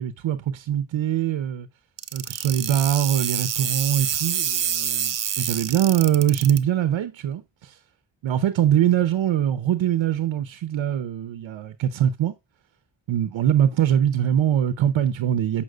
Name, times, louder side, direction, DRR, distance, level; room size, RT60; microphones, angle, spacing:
voice 1, 0.0-1.7 2.1-7.8 8.2-12.3 13.1-15.6, right 10 dB, 90° right, 0.7 m, -23 dB
sound 1, 2.0-6.6, right 8 dB, 45° right, 0.7 m, -27 dB
7.7 x 5.8 x 2.4 m
cardioid pair, 80°, 45 cm